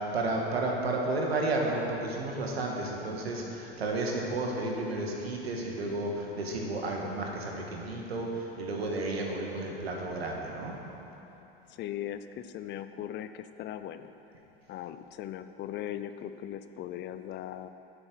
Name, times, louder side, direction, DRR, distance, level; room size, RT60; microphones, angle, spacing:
voice 1, 0.0-10.7, right 2 dB, 90° right, 0 dB, 1.8 m, -32 dB
voice 2, 11.8-14.1 14.7-17.7, left 11 dB, 35° left, 11 dB, 0.5 m, -39 dB
10.0 x 7.8 x 6.2 m, 3.0 s
hypercardioid pair, 90°, 30 cm